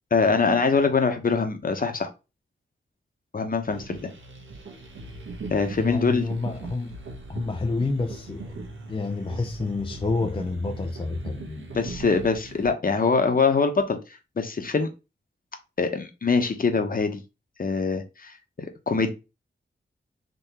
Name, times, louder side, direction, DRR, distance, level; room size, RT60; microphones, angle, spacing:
voice 1, 0.1-2.1 3.3-4.1 5.5-6.3 11.7-14.0 14.4-14.9 15.8-17.2 17.6-18.3 18.9-19.1, left 4 dB, 45° left, 1.0 m, -23 dB
sound 1, 3.7-12.7, right 3 dB, 80° right, 1.2 m, -40 dB
voice 2, 5.8-7.0 7.3-8.6 8.9-11.7, left 3 dB, 25° left, 0.5 m, -29 dB
3.8 x 3.0 x 4.2 m
wide cardioid pair, 85°, 20 cm